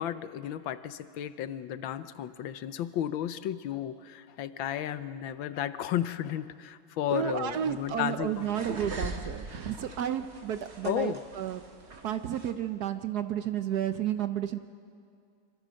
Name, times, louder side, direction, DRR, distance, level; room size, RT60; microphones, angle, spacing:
voice 1, 0.0-8.5 10.8-11.2, left 11 dB, 75° left, 13 dB, 1.5 m, -33 dB
voice 2, 7.1-11.6 12.0-14.6, right 10 dB, 65° right, 10 dB, 1.1 m, -32 dB
sound 1, 7.3-12.5, right 2 dB, 35° right, 1.8 m, -42 dB
25.0 x 25.0 x 6.4 m, 2.3 s
omnidirectional pair, 2.2 m